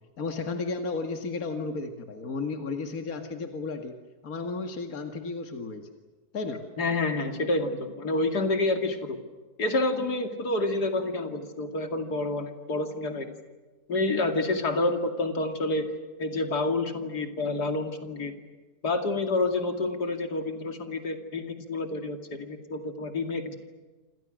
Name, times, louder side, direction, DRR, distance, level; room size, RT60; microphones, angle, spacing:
voice 1, 0.2-4.0 4.2-5.9 6.3-6.6, left 4 dB, 60° left, 5 dB, 2.5 m, -33 dB
voice 2, 6.8-9.2 9.6-13.3 13.9-15.9 16.2-18.3 18.8-23.6, left 2 dB, 80° left, 6 dB, 3.0 m, -28 dB
27.5 x 27.5 x 6.4 m, 1.3 s
omnidirectional pair, 1.7 m